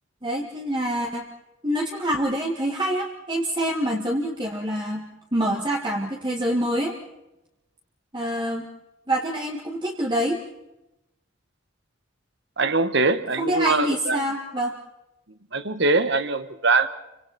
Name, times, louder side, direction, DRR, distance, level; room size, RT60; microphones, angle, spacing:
voice 1, 0.2-1.3 1.6-7.0 8.1-8.7 9.1-10.4 13.4-14.7, right 1 dB, 25° right, 0 dB, 2.0 m, -26 dB
voice 2, 12.6-14.2 15.5-16.9, right 3 dB, 60° right, 11 dB, 1.4 m, -22 dB
29.5 x 25.5 x 4.3 m, 0.93 s
head